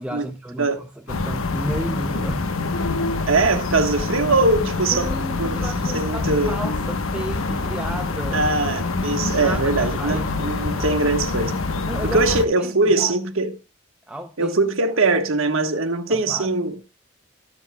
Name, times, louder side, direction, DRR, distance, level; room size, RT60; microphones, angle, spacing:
voice 1, 0.0-2.5 2.8-3.1 4.9-8.5 9.4-10.3 11.9-12.2 12.6-13.1 14.1-14.6 16.1-16.5, right 1 dB, 5° right, 0.5 m, -32 dB
sound 1, 1.1-12.4, left 3 dB, 85° left, 1.0 m, -25 dB
voice 2, 3.3-5.1 5.4-6.6 8.3-11.6 12.1-13.6 14.4-16.8, right 3 dB, 80° right, 1.3 m, -21 dB
21.5 x 7.2 x 2.2 m
head